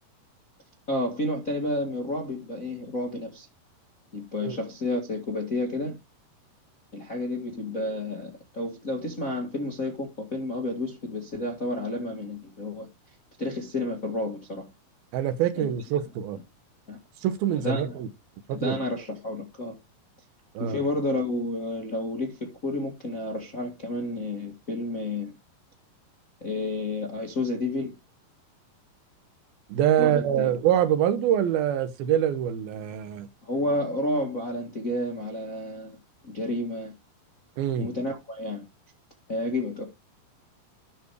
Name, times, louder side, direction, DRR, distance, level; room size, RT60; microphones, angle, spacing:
voice 1, 0.9-3.5 4.1-6.0 6.9-12.9 13.4-14.7 15.5-15.7 16.9-17.0 17.6-17.9 18.5-19.8 20.6-25.3 26.4-27.9 30.0-30.5 33.4-36.0 36.2-36.9 37.8-38.6 39.3-39.8, left 1 dB, 40° left, 1.1 m, -30 dB
voice 2, 15.1-16.4 17.2-18.1 18.5-18.8 20.6-20.8 29.7-33.3 37.6-37.9, right 10 dB, 75° right, 2.5 m, -25 dB
12.0 x 4.8 x 4.9 m
omnidirectional pair, 4.7 m